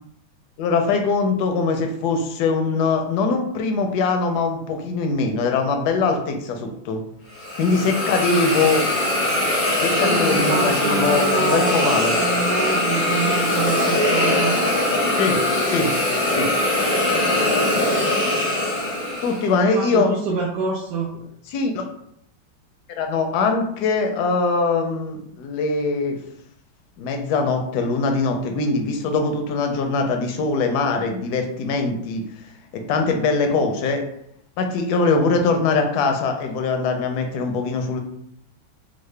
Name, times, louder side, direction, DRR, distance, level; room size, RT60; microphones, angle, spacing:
voice 1, 0.6-7.0 7.6-8.9 9.8-12.1 15.2-15.4 15.6-15.9 16.3-16.5 19.2-20.1 21.5-21.9 23.0-26.2 27.0-32.2 32.7-34.0 34.6-38.0, left 4 dB, 75° left, 4 dB, 1.0 m, -22 dB
Hiss, 7.3-19.5, left 1 dB, 55° left, 0.5 m, -21 dB
voice 2, 10.0-14.6 16.9-17.3 19.5-21.1 33.5-33.6, right 3 dB, 75° right, -3 dB, 0.9 m, -27 dB
3.7 x 2.0 x 3.2 m, 0.72 s
omnidirectional pair, 2.1 m